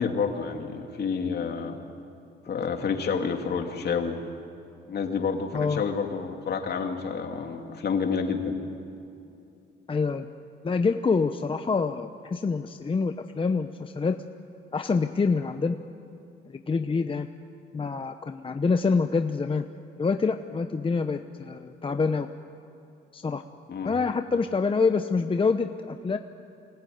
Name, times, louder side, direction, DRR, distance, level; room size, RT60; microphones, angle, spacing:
voice 1, 0.0-1.8 2.5-4.2 4.9-8.5 23.7-23.9, left 5 dB, 55° left, 4 dB, 2.6 m, -29 dB
voice 2, 9.9-10.3 10.6-14.2 14.7-15.8 16.5-17.3 17.7-19.6 20.0-22.3 23.1-23.4 23.8-26.2, left 4 dB, 25° left, 8 dB, 0.8 m, -26 dB
24.5 x 18.5 x 9.4 m, 2.7 s
cardioid pair, 90°, 20 cm